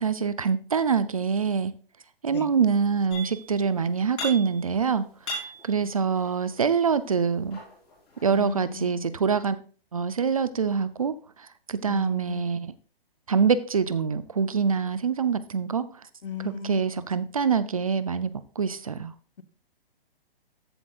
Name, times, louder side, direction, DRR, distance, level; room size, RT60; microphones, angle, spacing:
voice 1, 0.0-1.7 2.2-5.1 5.3-7.6 8.2-9.6 9.9-12.7 13.3-15.9 16.4-19.1, right 6 dB, 35° right, 0.4 m, -25 dB
sound 1, 3.1-3.6 3.9-4.8 5.1-6.6 7.3-8.4, equal, 15° left, 4.1 m, -37 dB
voice 2, 8.3-9.1 11.8-12.4 16.2-17.1, left 7 dB, 60° left, 1.1 m, -37 dB
14.0 x 7.9 x 2.4 m
hypercardioid pair, 170°, 30 cm